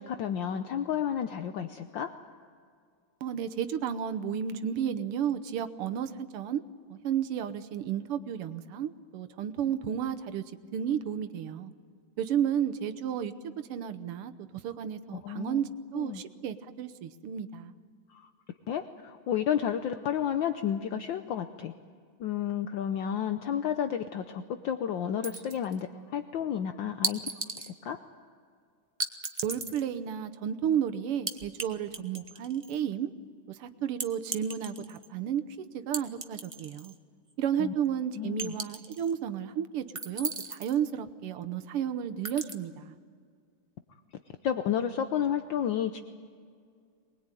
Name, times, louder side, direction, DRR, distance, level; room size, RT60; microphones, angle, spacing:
voice 1, 0.0-2.1 15.2-15.6 15.9-16.2 18.1-18.3 18.7-21.7 22.2-27.2 27.6-28.0 37.6-37.7 38.2-38.5 44.4-46.0, left 9 dB, 65° left, 8 dB, 1.4 m, -31 dB
voice 2, 3.2-6.6 6.9-10.4 10.7-11.7 12.2-14.3 14.6-17.7 29.4-33.1 33.5-35.4 35.7-36.9 37.4-43.0, right 9 dB, 85° right, 10 dB, 1.9 m, -32 dB
sound 1, 25.2-25.8 27.0-27.7 29.0-29.8 31.3-31.7 31.9-32.8 34.0-35.1 35.9-36.9 37.3-37.4 38.4-39.1 39.9-40.8 42.2-42.5, right 3 dB, 25° right, 0.7 m, -36 dB
23.5 x 20.5 x 9.1 m, 2.1 s
omnidirectional pair, 2.4 m